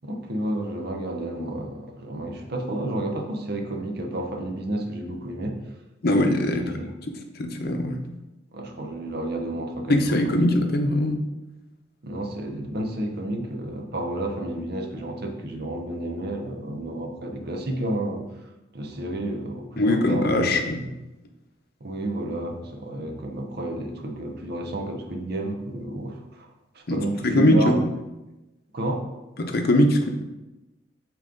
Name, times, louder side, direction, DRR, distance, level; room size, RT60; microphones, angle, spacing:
voice 1, 0.0-5.6 6.4-6.9 8.5-10.6 12.0-18.3 18.7-20.6 21.8-26.5 26.7-27.9 28.7-29.1, right 1 dB, 55° right, 3 dB, 0.8 m, -31 dB
voice 2, 6.0-6.6 7.1-8.0 9.9-11.2 19.8-20.9 26.9-27.7 29.4-30.1, left 1 dB, 55° left, 5 dB, 0.7 m, -21 dB
8.5 x 3.1 x 3.8 m, 1.0 s
head